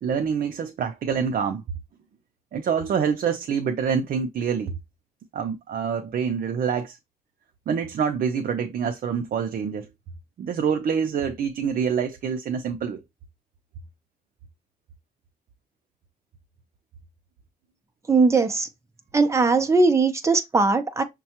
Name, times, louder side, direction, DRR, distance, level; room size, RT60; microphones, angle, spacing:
voice 1, 0.0-1.6 2.5-4.7 5.3-7.0 7.7-9.9 10.4-13.0, right 7 dB, 65° right, 0.5 m, -26 dB
voice 2, 18.1-18.7 19.1-21.0, right 3 dB, 20° right, 0.6 m, -19 dB
6.3 x 2.3 x 2.9 m
wide cardioid pair, 145°, 16 cm